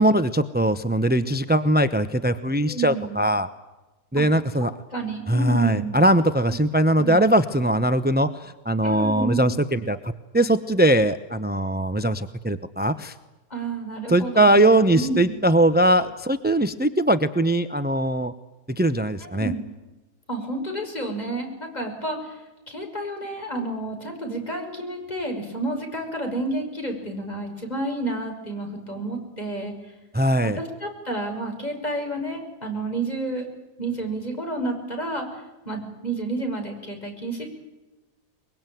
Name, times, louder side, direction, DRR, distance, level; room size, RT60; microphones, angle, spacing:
voice 1, 0.0-3.5 4.1-4.7 5.3-13.1 14.1-18.3 18.7-19.5 30.1-30.6, right 1 dB, 10° right, 11 dB, 0.5 m, -21 dB
voice 2, 2.7-3.2 4.2-4.3 4.9-6.0 7.0-7.3 8.8-9.6 13.5-14.6 14.9-15.4 19.2-19.6 20.3-29.7 30.6-33.5 33.8-37.5, right 2 dB, 25° left, 2 dB, 6.1 m, -30 dB
24.0 x 22.5 x 9.2 m, 1.1 s
omnidirectional pair, 1.7 m